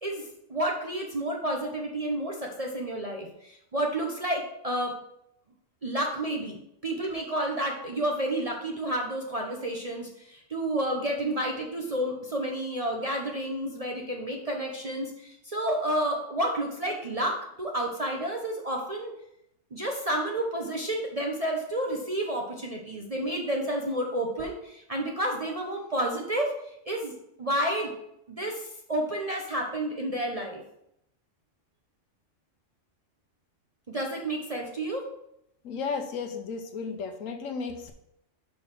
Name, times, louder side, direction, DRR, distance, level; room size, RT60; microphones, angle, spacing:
voice 1, 0.0-5.0 5.8-19.1 19.7-26.6 26.9-27.1 27.4-27.9 28.3-30.6 33.9-35.1, right 1 dB, 35° right, 0 dB, 0.8 m, -30 dB
voice 2, 35.6-37.9, left 5 dB, 85° left, 6 dB, 1.2 m, -34 dB
5.6 x 5.3 x 5.8 m, 0.79 s
omnidirectional pair, 1.3 m